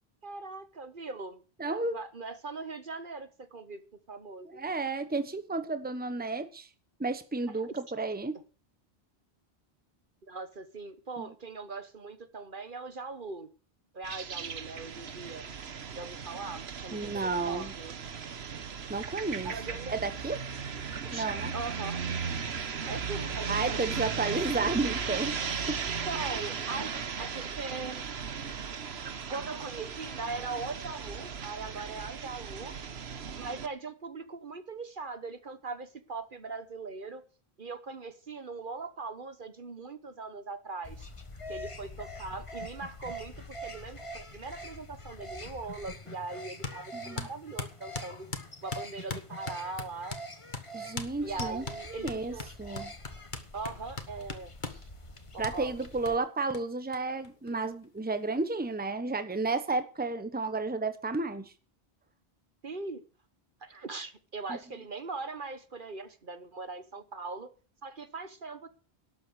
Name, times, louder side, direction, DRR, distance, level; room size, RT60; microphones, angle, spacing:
voice 1, 0.2-1.4 1.7-3.8 4.1-4.6 10.3-13.5 13.9-15.4 15.9-17.9 19.4-19.9 21.0-21.3 21.5-22.1 22.9-23.8 25.9-28.0 29.3-32.8 33.4-37.2 37.6-41.1 41.5-48.3 48.6-50.2 51.2-52.5 53.5-54.9 55.3-55.7 56.0-56.2 62.6-63.0 63.6-67.5 67.8-68.7, right 3 dB, 50° right, 1.3 m, -40 dB
voice 2, 1.6-2.0 4.5-6.7 7.0-8.3 11.2-11.3 16.9-17.7 18.9-19.5 19.9-20.4 21.1-21.5 23.5-25.4 25.7-25.8 46.9-47.3 50.7-51.6 51.9-52.9 55.4-61.5 64.5-64.6, right 3 dB, 10° right, 1.0 m, -32 dB
sound 1, 14.0-33.7, right 6 dB, 70° right, 1.3 m, -36 dB
sound 2, 40.8-56.2, equal, 30° left, 1.5 m, -45 dB
sound 3, 46.6-46.8 47.2-50.3 50.5-50.7 51.0-51.1 51.4-54.8 55.4-55.6 56.1-56.2 56.5-56.6 56.9-57.0 57.2-58.0, left 4 dB, 45° left, 1.8 m, -39 dB
12.5 x 8.0 x 8.0 m
omnidirectional pair, 1.1 m